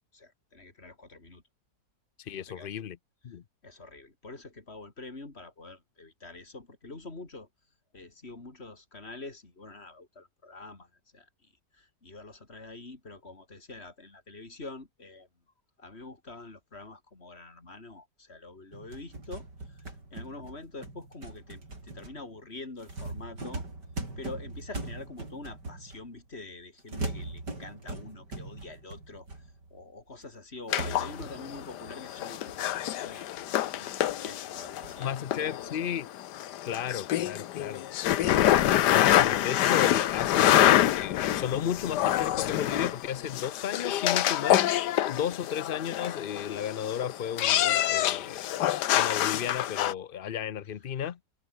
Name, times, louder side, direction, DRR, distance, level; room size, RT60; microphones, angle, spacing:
voice 1, 0.1-1.4 2.4-2.8 3.6-7.5 7.9-15.3 15.8-23.6 24.2-35.9, left 3 dB, 35° left, 3.9 m, -46 dB
voice 2, 2.2-3.0 3.2-3.4 35.0-36.1 36.7-37.8 38.7-44.6 45.0-48.6 48.9-51.2, left 9 dB, 60° left, 0.5 m, -34 dB
sound 1, 18.7-26.3 26.9-29.8 30.2-30.3 30.8-33.7 34.1-34.2 34.8-35.0, right 2 dB, 75° right, 7.0 m, -41 dB
sound 2, 30.7-49.9, left 12 dB, 80° left, 1.4 m, -26 dB
omnidirectional pair, 1.8 m